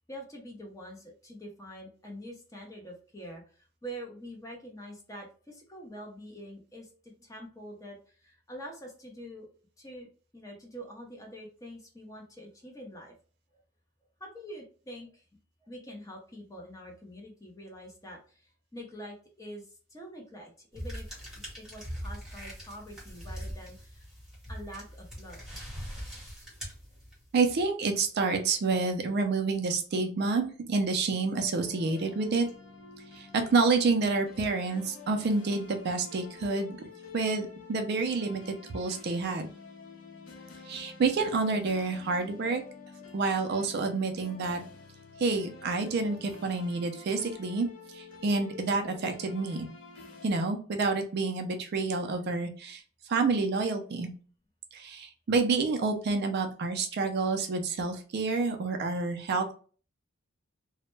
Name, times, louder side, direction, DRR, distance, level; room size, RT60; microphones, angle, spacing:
voice 1, 0.1-9.5 9.8-13.1 14.2-15.2 15.6-21.1 21.4-24.1 24.5-25.6 25.8-25.9, equal, 15° left, 0 dB, 0.5 m, -45 dB
sound 1, 20.7-27.4, equal, ahead, 0.9 m, -42 dB
voice 2, 27.3-32.5 33.1-36.8 37.1-39.5 40.7-42.6 43.1-44.6 45.2-47.7 47.9-49.7 50.2-52.8 53.1-54.1 54.7-59.5, right 4 dB, 50° right, 5 dB, 0.3 m, -28 dB
sound 2, 31.4-50.3, left 4 dB, 75° left, 0.6 m, -49 dB
2.1 x 2.0 x 3.0 m, 0.40 s
head